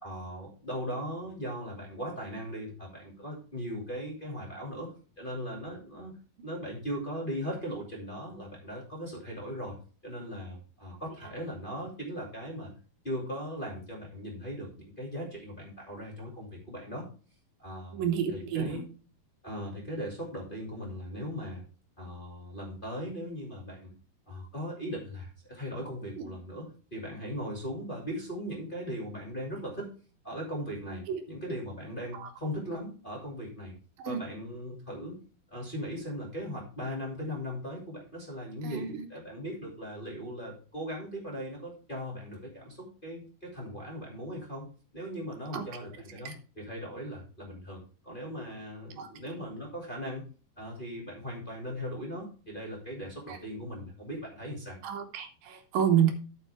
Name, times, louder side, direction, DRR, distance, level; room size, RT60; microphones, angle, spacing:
voice 1, 0.0-6.1 6.4-9.8 10.0-12.7 13.0-17.0 17.6-18.0 18.3-18.9 19.4-21.6 22.0-23.9 24.3-29.9 30.2-33.7 34.0-35.2 35.5-38.8 39.1-44.6 44.9-50.2 50.6-54.8, equal, 15° left, -3 dB, 2.0 m, -38 dB
voice 2, 17.9-18.8 26.2-26.3 31.1-31.2 32.1-32.3 34.0-34.2 38.6-39.0 45.5-45.6 46.2-46.4 49.0-49.1 53.3-53.4 54.8-56.1, right 9 dB, 75° right, 6 dB, 2.7 m, -29 dB
13.0 x 5.5 x 3.4 m, 0.38 s
omnidirectional pair, 4.2 m